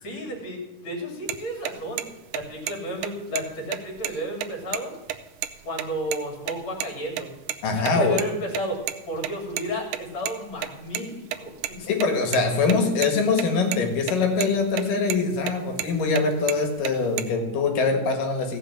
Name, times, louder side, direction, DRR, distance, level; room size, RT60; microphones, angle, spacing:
voice 1, 0.0-2.1 2.3-5.0 5.6-7.3 7.8-11.5, equal, 40° left, 1 dB, 3.5 m, -32 dB
sound 1, 1.3-1.4 1.7-1.8 2.0-2.1 2.3-2.7 3.0-3.1 3.4-3.5 3.7-4.8 5.1-5.2 5.4-5.5 5.8-6.2 6.5-6.9 7.2-8.2 8.5-11.0 11.3-13.1 13.4-13.5 13.7-14.1 14.4-14.8 15.1-16.2 16.5-17.2, right 12 dB, 80° right, 2.2 m, -30 dB
voice 2, 7.6-8.2 11.8-18.6, left 4 dB, 80° left, 4 dB, 3.5 m, -23 dB
16.0 x 6.7 x 7.4 m, 1.1 s
omnidirectional pair, 3.8 m